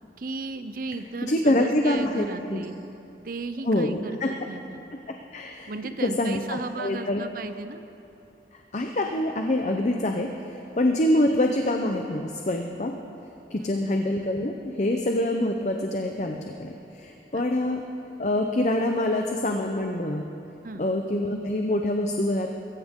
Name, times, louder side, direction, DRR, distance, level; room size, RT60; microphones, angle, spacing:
voice 1, 0.2-2.8 3.2-4.8 5.7-7.8 13.6-13.9 17.3-17.4 20.6-20.9, right 3 dB, 50° right, 10 dB, 0.7 m, -35 dB
voice 2, 1.2-2.6 3.6-4.3 5.3-5.7 6.0-7.2 8.7-12.9 13.5-17.8 18.2-20.3 20.8-22.5, left 1 dB, 40° left, 3 dB, 0.7 m, -25 dB
22.0 x 14.5 x 3.7 m, 2.9 s
head